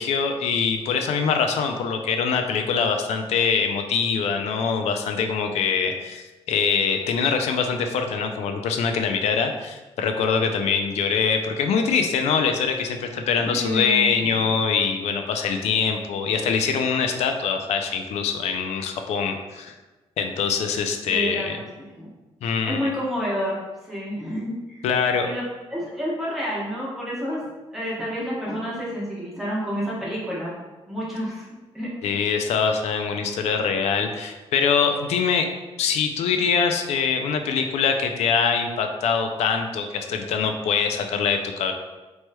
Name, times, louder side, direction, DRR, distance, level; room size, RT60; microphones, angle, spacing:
voice 1, 0.0-19.7 20.2-21.6 22.4-22.9 24.8-25.3 32.0-35.5 35.8-41.7, left 6 dB, 75° left, 5 dB, 0.4 m, -23 dB
voice 2, 13.4-14.3 21.1-21.7 22.0-22.1 22.6-24.8 25.2-25.4 25.7-27.4 27.7-30.6 30.9-31.5 31.7-32.2, equal, ahead, -7 dB, 1.0 m, -29 dB
3.0 x 3.0 x 2.2 m, 1.2 s
cardioid pair, 125°, 11 cm